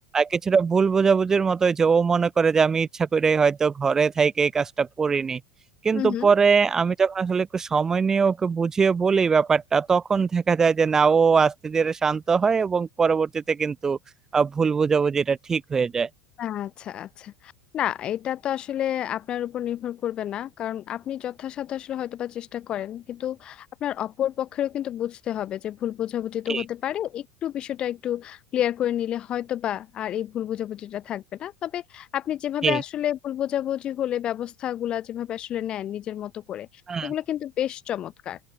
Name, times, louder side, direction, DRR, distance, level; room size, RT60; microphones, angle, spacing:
voice 1, 0.1-5.4 5.8-14.0 14.3-16.1 26.5-26.6 32.6-32.8 36.9-37.1, right 5 dB, 20° right, 0.3 m, -21 dB
voice 2, 5.9-6.3 16.4-36.7 37.0-38.4, left 11 dB, 40° left, 0.5 m, -30 dB
open air
hypercardioid pair, 100°, 2 cm